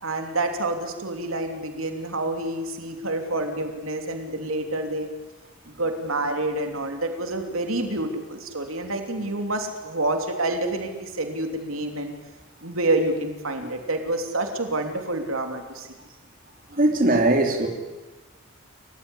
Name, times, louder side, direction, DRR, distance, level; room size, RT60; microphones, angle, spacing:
voice 1, 0.0-5.1 5.7-12.1 12.6-15.9, right 2 dB, 85° right, 5 dB, 3.1 m, -28 dB
voice 2, 16.7-17.7, right 2 dB, 45° right, 3 dB, 3.2 m, -20 dB
29.5 x 15.5 x 9.9 m, 1.2 s
head